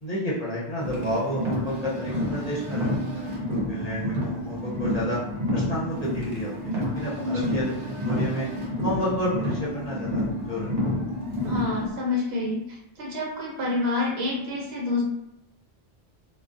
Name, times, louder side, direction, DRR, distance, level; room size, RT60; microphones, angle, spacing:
voice 1, 0.0-3.4 3.7-5.2 5.5-8.5 8.8-10.7, equal, 40° left, -8 dB, 0.8 m, -31 dB
Car, 0.8-11.9, left 1 dB, 45° right, 0.6 m, -29 dB
voice 2, 7.2-7.7 11.5-12.6 13.0-15.0, left 3 dB, 70° right, -2 dB, 1.0 m, -27 dB
2.3 x 2.2 x 2.5 m, 0.86 s
omnidirectional pair, 1.1 m